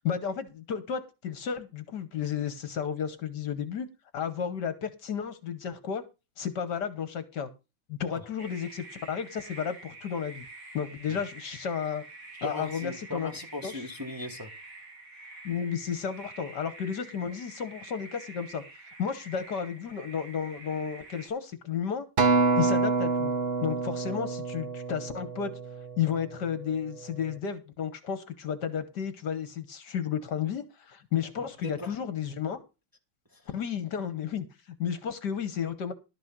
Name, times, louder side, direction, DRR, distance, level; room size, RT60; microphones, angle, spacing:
voice 1, 0.0-3.9 4.1-6.0 6.4-7.5 7.9-10.4 10.7-12.0 12.4-13.3 13.6-13.7 15.4-18.6 19.0-22.0 22.6-23.3 23.6-25.6 26.0-32.6 33.5-35.9, left 7 dB, 60° left, 1.6 m, -32 dB
sound 1, 8.4-21.3, right 3 dB, 80° right, 3.8 m, -47 dB
voice 2, 12.4-14.5 31.4-31.9 33.3-33.5, left 1 dB, 10° right, 1.5 m, -39 dB
Acoustic guitar, 22.2-26.6 27.2-27.4, right 4 dB, 35° right, 1.0 m, -27 dB
12.5 x 6.2 x 6.0 m
omnidirectional pair, 2.2 m